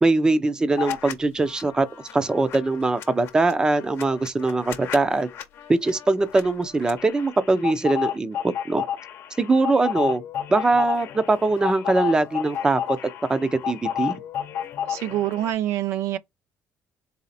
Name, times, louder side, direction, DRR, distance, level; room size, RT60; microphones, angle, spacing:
voice 1, 0.0-1.9 2.1-5.3 5.7-8.8 9.4-10.2 10.5-13.0 13.3-14.2, right 3 dB, 15° right, 0.6 m, -22 dB
sound 1, 0.8-1.1 1.5-15.5, left 9 dB, 65° left, 0.8 m, -32 dB
voice 2, 14.9-16.2, right 13 dB, 85° right, 0.5 m, -26 dB
4.2 x 3.0 x 4.2 m
cardioid pair, 130°, 5 cm